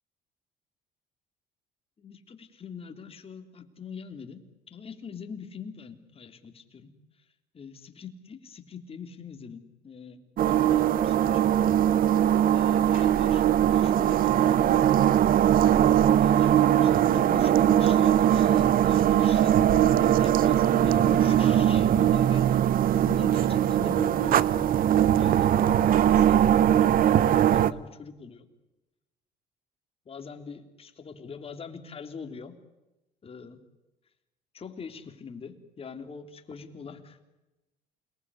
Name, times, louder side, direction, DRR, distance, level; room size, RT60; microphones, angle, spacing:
voice 1, 2.0-4.4 4.7-6.9 7.5-11.8 12.5-14.9 15.5-15.9 16.2-22.6 22.9-24.5 25.2-28.4 30.0-32.6 33.2-33.6 34.5-37.2, left 6 dB, 35° left, 6 dB, 3.3 m, -43 dB
sound 1, 10.4-27.7, right 11 dB, 55° right, 1.0 m, -21 dB
sound 2, 18.3-26.1, right 6 dB, 80° right, 5.6 m, -39 dB
29.0 x 19.5 x 9.8 m, 1.0 s
cardioid pair, 110°, 17 cm